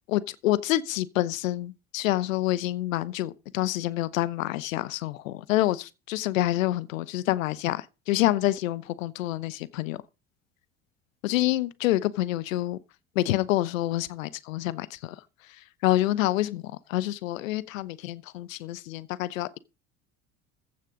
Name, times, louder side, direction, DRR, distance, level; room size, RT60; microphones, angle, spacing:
voice 1, 0.1-10.0 11.2-12.8 13.1-15.2 15.5-16.6 16.9-19.6, left 15 dB, 75° left, 0.9 m, -27 dB
15.0 x 6.7 x 5.1 m
hypercardioid pair, 70°, 40 cm